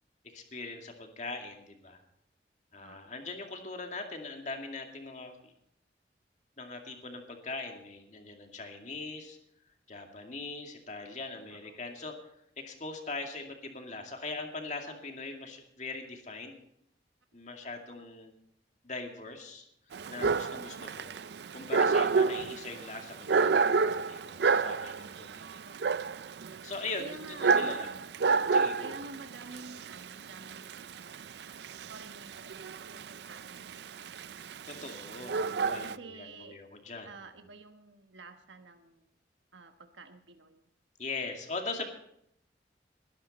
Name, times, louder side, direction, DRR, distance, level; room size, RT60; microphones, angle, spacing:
voice 1, 0.3-2.0 2.7-5.5 6.6-9.4 9.9-12.2 12.6-16.6 17.3-18.3 18.8-19.7 20.1-21.1 21.5-25.6 26.6-27.9 28.2-29.0 34.7-37.1 41.0-41.9, left 3 dB, 40° left, 3 dB, 2.3 m, -41 dB
voice 2, 2.8-3.1 11.5-11.8 17.9-18.1 25.6-26.3 27.0-28.1 28.4-31.4 31.9-34.1 35.5-36.6 37.0-39.1 39.5-40.7, right 3 dB, 85° right, 7 dB, 1.2 m, -50 dB
Dog, 19.9-35.9, right 4 dB, 65° right, 0.4 m, -30 dB
20.5 x 12.0 x 4.2 m, 0.74 s
head